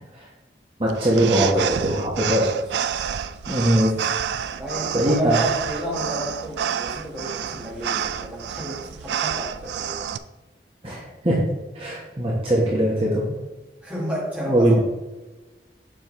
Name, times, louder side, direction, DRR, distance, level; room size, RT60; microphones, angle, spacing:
voice 1, 0.8-2.5 3.5-3.9 4.9-5.4 10.8-11.4 11.7-13.3 14.5-14.8, right 1 dB, 30° right, -5 dB, 1.3 m, -21 dB
sound 1, 0.9-10.2, right 8 dB, 80° right, 0.3 m, -29 dB
voice 2, 4.5-10.0 13.8-14.8, equal, 10° right, -5 dB, 1.7 m, -31 dB
7.2 x 5.3 x 3.2 m, 1.1 s
head